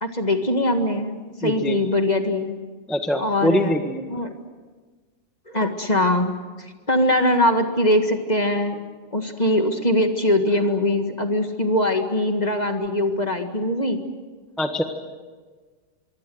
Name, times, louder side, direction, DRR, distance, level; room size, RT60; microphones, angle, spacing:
voice 1, 0.0-2.5 3.2-3.7 4.1-4.3 5.5-8.8 9.1-14.0, left 1 dB, 20° left, 5 dB, 1.8 m, -22 dB
voice 2, 1.4-1.8 2.9-4.0 14.6-14.8, equal, ahead, 5 dB, 1.2 m, -23 dB
25.5 x 23.5 x 7.9 m, 1.4 s
omnidirectional pair, 2.2 m